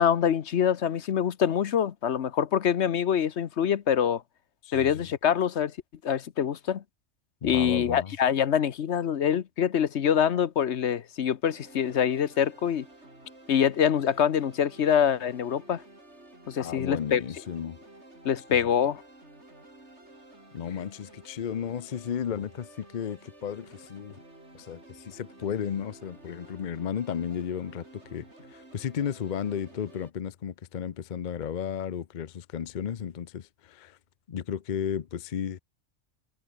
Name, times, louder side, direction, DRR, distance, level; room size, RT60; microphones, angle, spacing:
voice 1, 0.0-4.2 4.7-5.7 6.0-6.8 7.4-12.8 13.5-15.8 16.5-17.2 18.2-19.0, left 8 dB, 70° left, 1.2 m, -25 dB
voice 2, 4.6-5.1 7.4-8.1 16.6-17.8 18.5-18.6 20.5-24.2 24.5-34.0 34.3-35.6, left 8 dB, 50° left, 0.7 m, -34 dB
sound 1, 11.4-30.1, right 1 dB, 70° right, 6.7 m, -52 dB
omnidirectional pair, 1.2 m